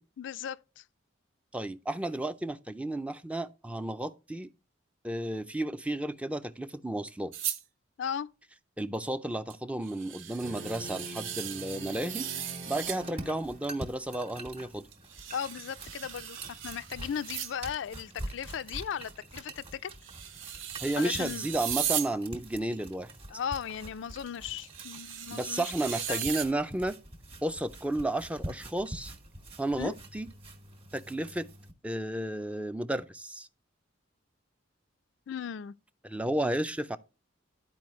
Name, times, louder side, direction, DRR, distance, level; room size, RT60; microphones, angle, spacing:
voice 1, 0.2-0.8 8.0-8.3 15.3-19.9 21.0-21.5 23.3-26.3 29.8-29.9 35.3-35.7, left 8 dB, 65° left, 0.4 m, -37 dB
voice 2, 1.5-4.5 5.0-7.3 8.8-12.3 12.7-14.9 20.8-23.1 25.3-27.0 27.4-29.1 29.6-30.3 30.9-31.5 31.8-33.5 36.0-37.0, right 1 dB, 5° right, 0.4 m, -32 dB
sound 1, 7.3-7.6 9.5-9.6 9.8-13.0 14.9-17.5 18.4-18.5 20.0-22.1 24.3-24.4 24.6-26.4, right 9 dB, 75° right, 0.8 m, -37 dB
sound 2, 10.4-14.2, equal, 45° right, 0.9 m, -45 dB
sound 3, 12.5-31.7, right 1 dB, 30° right, 1.4 m, -46 dB
12.0 x 4.6 x 3.1 m
head